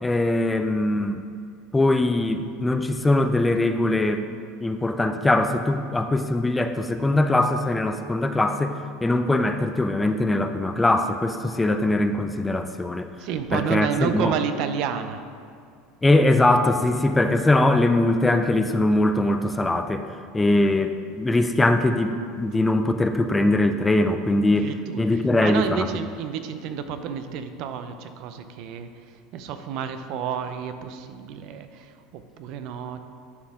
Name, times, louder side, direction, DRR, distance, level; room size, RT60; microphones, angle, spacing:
voice 1, 0.0-1.2 1.7-4.2 4.6-13.1 13.5-14.3 16.0-20.0 20.3-24.7 25.0-25.9, left 2 dB, 10° left, 8 dB, 0.3 m, -21 dB
voice 2, 13.2-15.2 24.6-28.9 29.3-33.0, right 8 dB, 60° right, 9 dB, 0.5 m, -30 dB
11.0 x 4.3 x 3.6 m, 2.2 s
supercardioid pair, 120°, 0 cm